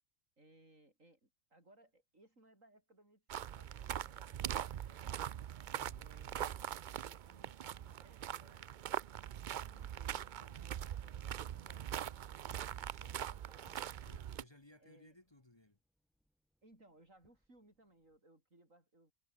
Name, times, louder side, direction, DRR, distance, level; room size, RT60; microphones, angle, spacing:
voice 1, 0.4-5.2 6.0-6.7 7.0-8.9 9.7-12.3 13.0-14.1 14.8-15.2 16.6-19.1, right 1 dB, 85° right, 8.5 m, -65 dB
sound 1, 3.3-14.4, right 10 dB, 60° right, 0.5 m, -42 dB
voice 2, 5.7-6.1 9.5-10.4 12.5-13.2 14.1-15.8, left 2 dB, 20° left, 1.4 m, -63 dB
sound 2, 13.5-18.2, equal, ahead, 0.9 m, -66 dB
omnidirectional pair, 1.3 m